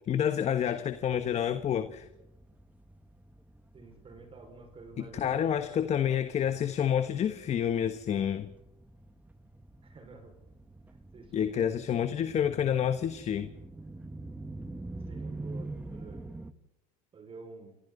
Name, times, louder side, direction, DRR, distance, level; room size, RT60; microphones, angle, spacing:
voice 1, 0.1-2.1 5.0-8.5 11.3-13.5, left 9 dB, 40° left, 1.3 m, -29 dB
sound 1, 0.8-16.5, right 2 dB, 10° right, 1.3 m, -46 dB
voice 2, 3.7-5.8 9.8-10.3 11.1-11.7 15.1-16.2 17.1-17.8, right 4 dB, 30° right, 5.5 m, -49 dB
28.0 x 26.5 x 4.1 m
supercardioid pair, 95°, 17 cm